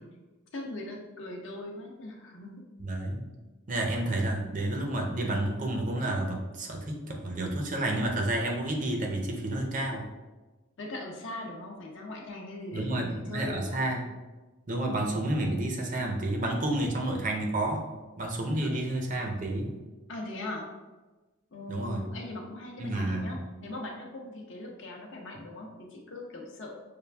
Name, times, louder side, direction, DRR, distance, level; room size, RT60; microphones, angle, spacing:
voice 1, 0.5-2.6 10.8-13.9 18.6-18.7 20.1-20.7 21.5-26.8, left 2 dB, 60° left, 0 dB, 0.7 m, -40 dB
voice 2, 2.8-3.3 3.7-10.1 12.7-14.0 14.7-17.9 18.2-19.7 21.7-22.0 22.8-23.3, right 1 dB, 40° right, 1 dB, 0.6 m, -30 dB
6.6 x 2.4 x 2.3 m, 1.2 s
head